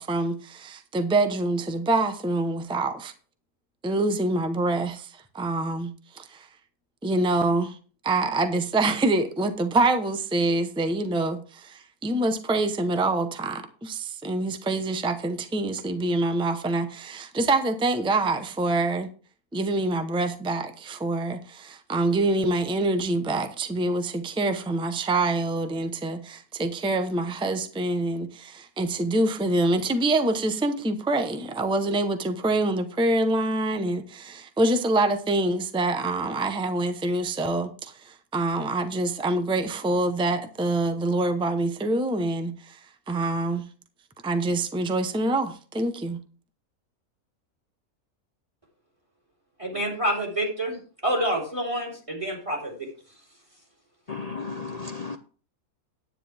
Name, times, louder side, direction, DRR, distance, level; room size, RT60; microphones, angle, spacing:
voice 1, 0.0-3.1 3.8-6.5 7.0-7.8 8.0-19.1 19.5-42.8 43.1-43.7 44.2-46.2, right 2 dB, 5° right, 0.6 m, -26 dB
voice 2, 49.6-50.8 51.0-52.9, right 1 dB, 20° right, 3.5 m, -27 dB
voice 3, 54.1-55.2, left 4 dB, 65° left, 0.3 m, -34 dB
9.9 x 9.7 x 3.5 m
omnidirectional pair, 1.5 m